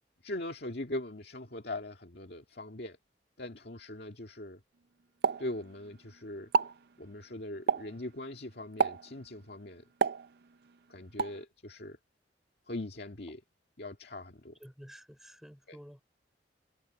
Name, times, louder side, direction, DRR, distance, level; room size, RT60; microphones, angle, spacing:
voice 1, 0.2-3.0 3.4-4.6 5.4-6.5 7.0-9.8 10.9-12.0 12.7-13.4 13.8-14.6 15.7-15.8, left 1 dB, 60° left, 2.1 m, -41 dB
Explosion, 5.2-6.1 6.4-6.8 7.7-8.0 8.8-9.2 10.0-10.7 11.2-11.4, right 6 dB, 60° right, 0.5 m, -30 dB
voice 2, 14.6-16.0, equal, ahead, 5.2 m, -51 dB
head